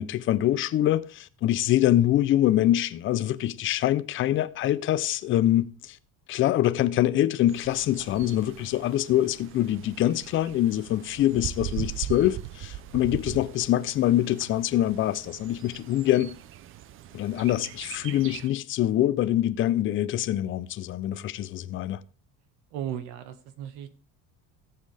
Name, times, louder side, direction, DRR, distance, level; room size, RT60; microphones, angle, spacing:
voice 1, 0.0-6.0 6.3-16.3 17.1-22.0, left 13 dB, 35° left, 0.5 m, -24 dB
Bird, 7.5-18.5, right 12 dB, 35° right, 0.4 m, -40 dB
voice 2, 22.7-23.9, right 10 dB, 80° right, 1.6 m, -35 dB
17.5 x 7.6 x 3.3 m
cardioid pair, 170°, 38 cm